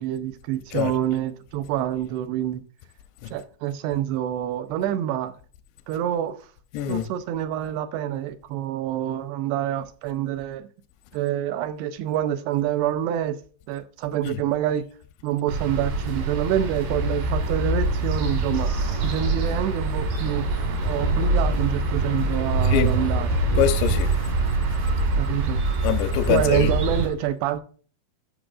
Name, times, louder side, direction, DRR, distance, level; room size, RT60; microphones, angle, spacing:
voice 1, 0.0-2.6 3.3-5.3 5.9-6.4 6.9-10.7 11.1-13.4 13.7-14.9 15.2-18.7 19.0-20.5 20.8-23.3 25.2-25.6 26.3-27.6, right 11 dB, 85° right, 2.7 m, -26 dB
voice 2, 6.7-7.1 14.3-14.4 22.7-22.9 23.6-24.1 25.8-26.7, left 11 dB, 90° left, 2.9 m, -23 dB
sound 1, 15.5-27.1, right 2 dB, 70° right, 4.1 m, -24 dB
11.0 x 6.4 x 2.4 m
omnidirectional pair, 4.8 m